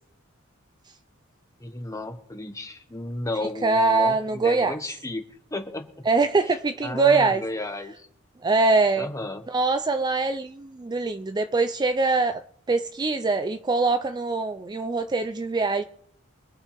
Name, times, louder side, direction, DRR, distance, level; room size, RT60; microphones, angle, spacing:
voice 1, 1.6-5.2 5.5-6.1 6.4-6.6 6.8-8.1 9.0-9.5, left 2 dB, 15° left, 1.3 m, -33 dB
voice 2, 3.6-4.7 6.1-7.4 8.4-9.1 9.5-12.4 12.7-15.8, right 3 dB, 20° right, 0.4 m, -23 dB
24.5 x 8.6 x 3.4 m
head